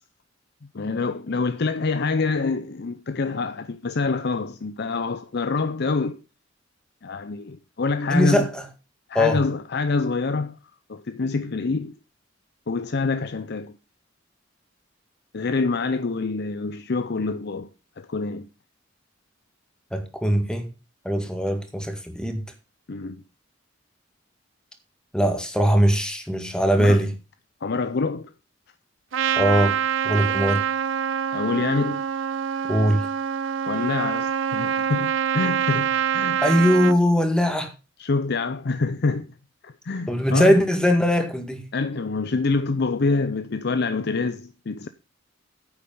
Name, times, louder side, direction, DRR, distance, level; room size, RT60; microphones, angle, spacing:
voice 1, 0.7-6.2 7.0-8.5 9.1-10.6 10.9-11.9 12.7-13.7 15.3-17.7 18.0-18.5 22.9-23.2 26.8-27.0 27.6-28.3 31.3-32.0 33.7-36.4 38.0-39.3 39.6-40.6 41.7-44.9, left 3 dB, 55° left, 0.6 m, -26 dB
voice 2, 8.1-8.6 9.1-9.4 19.9-20.7 21.1-22.4 25.1-27.1 29.4-29.8 30.0-30.6 32.7-33.0 36.4-37.7 40.1-41.6, equal, 5° left, 1.9 m, -20 dB
Trumpet, 29.1-37.0, right 8 dB, 70° right, 0.5 m, -25 dB
9.9 x 8.5 x 5.5 m
head